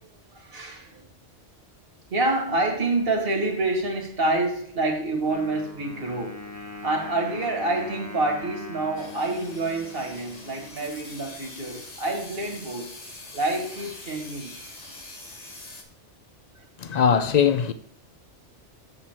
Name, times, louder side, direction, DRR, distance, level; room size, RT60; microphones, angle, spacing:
voice 1, 0.3-1.0 2.1-6.5 6.8-12.9 13.3-14.5 16.6-16.7, right 2 dB, 50° right, 1.8 m, -27 dB
Wind instrument woodwind instrument, 5.3-10.9, left 2 dB, 15° left, 0.8 m, -41 dB
sound 1, 9.0-15.8, left 2 dB, 35° left, 1.3 m, -43 dB
voice 2, 16.8-17.7, left 7 dB, 60° left, 0.4 m, -20 dB
7.3 x 6.9 x 4.3 m
omnidirectional pair, 1.2 m